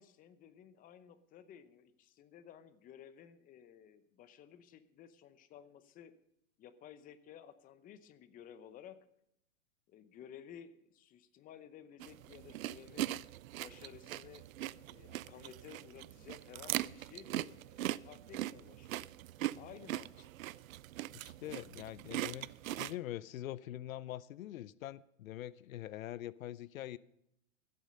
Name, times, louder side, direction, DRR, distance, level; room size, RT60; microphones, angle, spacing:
voice 1, 0.0-6.1 6.6-9.0 9.9-13.1 13.5-14.4 14.9-19.1 19.6-20.3, left 9 dB, 20° left, 13 dB, 0.7 m, -55 dB
sound 1, 12.0-22.9, right 15 dB, 80° right, 0.5 m, -41 dB
voice 2, 21.1-27.0, left 13 dB, 80° left, 20 dB, 0.6 m, -44 dB
15.0 x 8.5 x 5.5 m, 0.76 s
hypercardioid pair, 130°, 41 cm